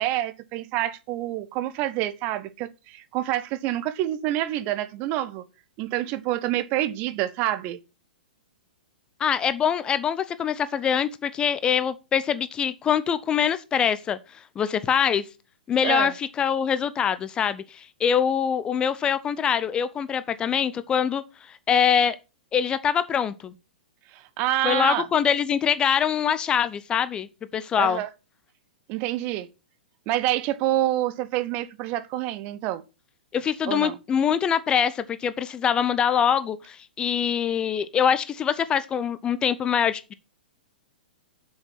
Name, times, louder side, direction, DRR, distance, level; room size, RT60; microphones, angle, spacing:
voice 1, 0.0-5.4 5.8-7.8 15.8-16.1 24.1-25.1 27.8-28.1 28.9-29.5 30.1-32.8 33.7-34.0, right 14 dB, 30° right, 0.8 m, -27 dB
voice 2, 9.2-15.2 15.7-22.2 22.5-23.5 24.6-28.0 33.3-40.1, left 8 dB, 15° left, 0.6 m, -24 dB
8.0 x 6.4 x 5.9 m
figure-of-eight pair, 110°, 5 cm